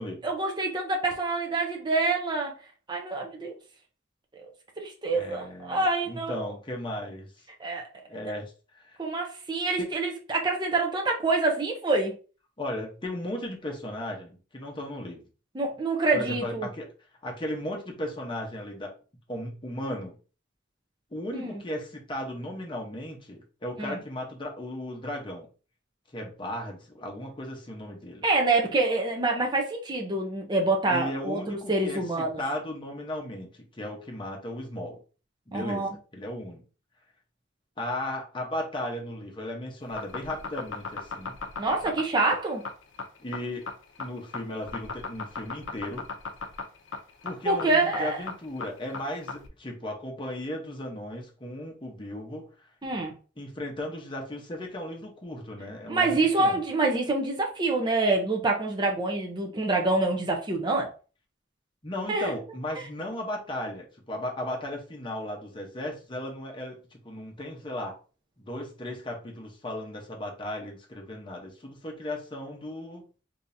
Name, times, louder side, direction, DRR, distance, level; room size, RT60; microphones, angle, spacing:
voice 1, 0.2-2.5 2.9-3.5 4.4-4.5 4.8-6.4 7.6-7.8 9.0-12.2 15.5-16.7 21.3-21.6 23.8-24.0 28.2-32.4 35.5-35.9 41.6-42.6 47.4-48.2 52.8-53.1 55.9-60.9 62.1-62.3, right 3 dB, 25° right, 0.6 m, -26 dB
voice 2, 5.1-7.3 8.1-8.4 8.7-9.0 9.8-9.9 12.6-15.3 16.1-16.9 17.2-18.9 19.3-20.2 21.1-25.5 26.1-28.2 30.9-35.0 35.5-36.7 37.8-41.3 43.2-43.6 44.0-46.1 47.2-52.5 53.4-56.6 61.8-68.0 68.4-73.0, left 1 dB, 25° left, 0.8 m, -36 dB
sound 1, 39.8-49.5, left 4 dB, 85° left, 0.5 m, -36 dB
3.6 x 2.8 x 2.6 m
head